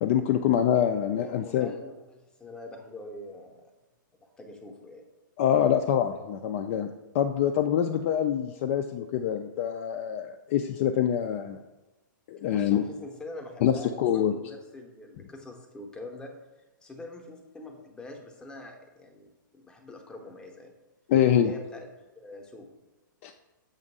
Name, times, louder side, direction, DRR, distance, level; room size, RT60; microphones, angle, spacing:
voice 1, 0.0-1.7 5.4-6.9 7.1-11.6 12.3-12.8 13.6-14.3 21.1-21.5 23.2-23.3, left 9 dB, 40° left, 7 dB, 0.3 m, -25 dB
voice 2, 1.2-3.6 4.2-5.0 12.5-16.3 16.8-20.7 21.4-21.9 22.1-22.7, left 2 dB, 5° left, 2 dB, 0.8 m, -44 dB
7.1 x 2.5 x 5.3 m, 1.1 s
hypercardioid pair, 145°, 11 cm